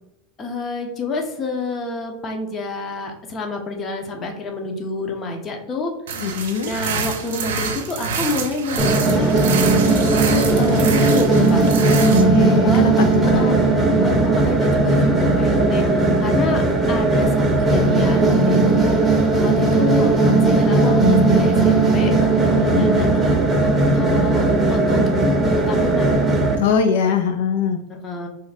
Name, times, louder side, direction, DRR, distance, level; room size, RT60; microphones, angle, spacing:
voice 1, 0.4-5.9 6.6-9.3 9.8-11.6 12.4-12.8 13.2-13.7 14.0-15.8 16.2-16.6 16.9-19.0 19.4-20.1 20.4-22.1 22.4-26.2 27.9-28.3, left 3 dB, 30° left, 3 dB, 0.7 m, -28 dB
sound 1, 6.1-12.2, right 5 dB, 85° right, 0.5 m, -27 dB
voice 2, 6.2-6.7 12.0-13.1 13.3-13.5 22.5-22.9 26.6-27.8, left 6 dB, 80° left, 6 dB, 0.4 m, -22 dB
sound 2, 8.8-26.6, right 2 dB, 10° right, 0.7 m, -17 dB
2.5 x 2.3 x 4.1 m, 0.84 s
supercardioid pair, 125°, 0 cm